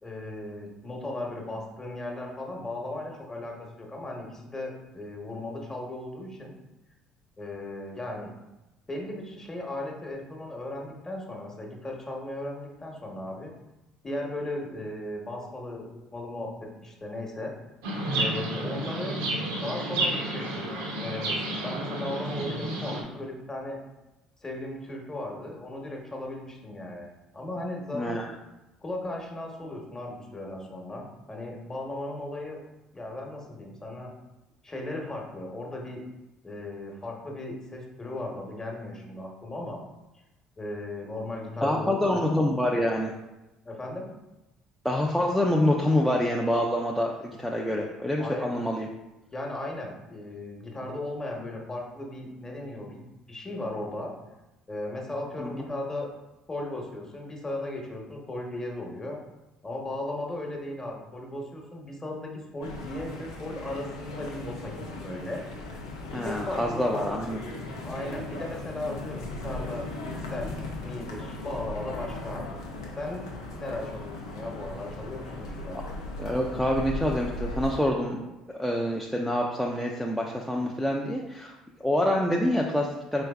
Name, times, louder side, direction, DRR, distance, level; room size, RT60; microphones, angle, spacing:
voice 1, 0.0-6.5 7.4-8.3 8.9-13.5 14.0-17.5 18.1-19.2 19.6-23.8 24.4-27.1 27.3-28.2 28.8-32.6 32.9-34.1 34.6-36.0 36.4-39.8 40.6-42.2 43.6-44.1 48.2-48.5 49.3-54.1 54.7-56.1 56.5-59.2 59.6-65.4 66.2-67.1 67.8-70.5 70.8-72.6 73.0-73.3 73.6-75.8, left 1 dB, 20° left, 0 dB, 1.1 m, -36 dB
Chirp tweet, 17.8-23.0, right 1 dB, 80° right, 0.8 m, -31 dB
voice 2, 27.9-28.2 41.6-43.1 44.8-48.9 55.4-55.5 66.1-67.4 76.2-78.3 78.5-81.5 81.8-83.2, left 1 dB, 5° left, -2 dB, 0.5 m, -26 dB
sound 1, 62.6-77.8, left 2 dB, 85° left, 0.6 m, -37 dB
4.5 x 3.3 x 2.3 m, 1.0 s
hypercardioid pair, 55°, 2 cm